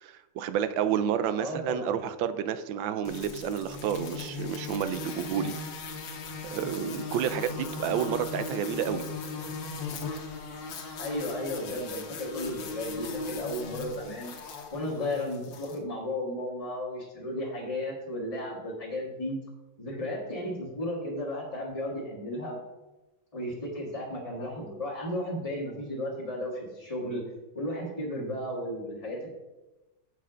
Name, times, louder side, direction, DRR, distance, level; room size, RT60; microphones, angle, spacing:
voice 1, 0.0-5.5 6.5-9.0, right 9 dB, 80° right, 11 dB, 1.4 m, -30 dB
voice 2, 1.4-2.0 11.0-14.3 14.7-19.4 19.8-22.6 23.3-27.2 27.5-29.3, left 1 dB, 20° left, -6 dB, 1.7 m, -34 dB
sound 1, 3.0-15.8, left 3 dB, 75° left, 1.7 m, -38 dB
7.5 x 6.7 x 5.0 m, 1.1 s
omnidirectional pair, 2.1 m